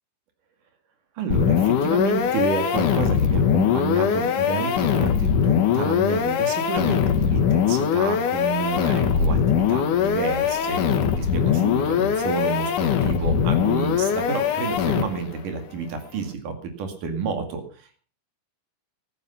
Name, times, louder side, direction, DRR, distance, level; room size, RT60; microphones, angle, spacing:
voice 1, 1.2-18.0, right 5 dB, 85° right, 6 dB, 3.8 m, -29 dB
sound 1, 1.3-15.4, left 8 dB, 80° left, 3.0 m, -21 dB
14.0 x 14.0 x 5.5 m, 0.40 s
omnidirectional pair, 3.6 m